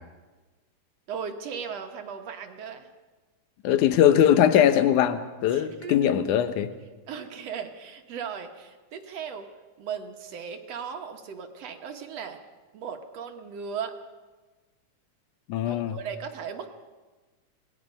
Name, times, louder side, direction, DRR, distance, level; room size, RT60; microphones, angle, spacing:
voice 1, 1.1-2.9 5.5-6.2 7.1-9.5 9.8-12.4 12.7-14.0 15.7-16.7, right 7 dB, 60° right, 5 dB, 2.1 m, -37 dB
voice 2, 3.6-6.7 15.5-16.0, left 10 dB, 70° left, 10 dB, 2.4 m, -21 dB
27.0 x 19.0 x 5.3 m, 1.3 s
omnidirectional pair, 3.8 m